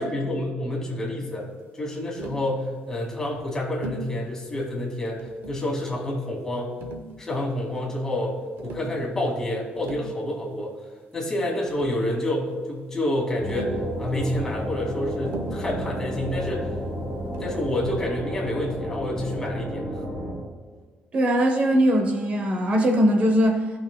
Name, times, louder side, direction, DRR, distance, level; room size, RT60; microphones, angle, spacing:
voice 1, 0.0-1.5 1.7-6.8 7.2-8.4 8.6-10.7 11.1-16.7 17.4-20.0, left 1 dB, 15° left, -2 dB, 2.1 m, -28 dB
Tap, 2.2-2.5 3.8-4.1 5.2-5.7 6.8-7.6 8.6-8.9 9.6-10.1 11.3-11.4 11.7-12.2 13.5-13.9 15.3-15.7 17.3-17.7, right 3 dB, 85° right, 0.9 m, -38 dB
sound 1, 13.4-20.4, equal, 5° right, 2.7 m, -31 dB
voice 2, 21.1-23.7, equal, 40° right, 3 dB, 0.9 m, -20 dB
16.5 x 6.0 x 2.2 m, 1.5 s
cardioid pair, 160°, 4 cm